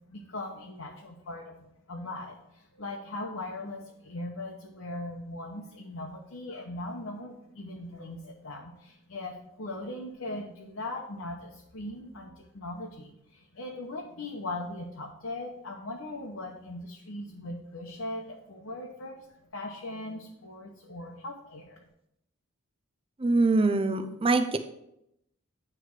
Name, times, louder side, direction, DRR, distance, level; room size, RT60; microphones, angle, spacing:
voice 1, 0.1-19.3 19.5-21.8, left 2 dB, 70° left, -1 dB, 0.8 m, -39 dB
voice 2, 23.2-24.6, right 3 dB, 25° right, 9 dB, 0.4 m, -24 dB
9.3 x 3.3 x 4.7 m, 0.80 s
head